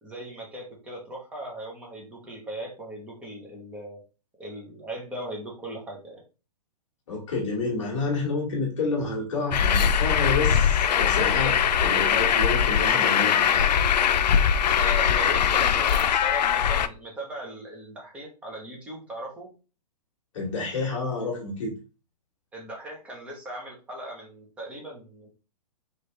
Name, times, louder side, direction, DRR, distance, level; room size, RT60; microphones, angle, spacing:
voice 1, 0.0-4.0 4.4-6.2 14.7-19.5 22.5-25.3, right 1 dB, 5° right, -1 dB, 0.9 m, -38 dB
voice 2, 7.1-13.8 20.3-21.7, left 3 dB, 45° left, -1 dB, 1.5 m, -29 dB
Truck, 9.5-16.9, left 8 dB, 85° left, 0.5 m, -21 dB
4.7 x 3.1 x 3.2 m, 0.33 s
hypercardioid pair, 170°, 21 cm